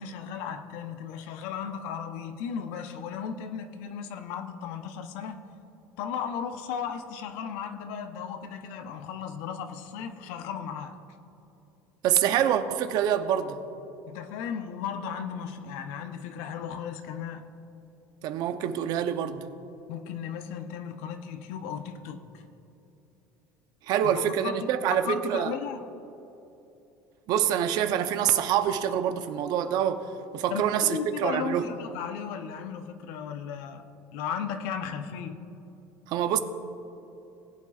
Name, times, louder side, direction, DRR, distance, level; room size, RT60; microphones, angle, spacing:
voice 1, 0.0-5.4 6.0-10.9 14.1-17.4 19.9-22.4 24.0-24.6 24.9-25.8 30.5-35.4, left 7 dB, 80° left, 8 dB, 0.8 m, -35 dB
voice 2, 12.0-13.6 18.2-19.4 23.9-25.5 27.3-30.1 30.3-31.6 36.1-36.4, right 9 dB, 60° right, 9 dB, 0.7 m, -26 dB
19.5 x 8.4 x 2.4 m, 2.9 s
supercardioid pair, 120°, 8 cm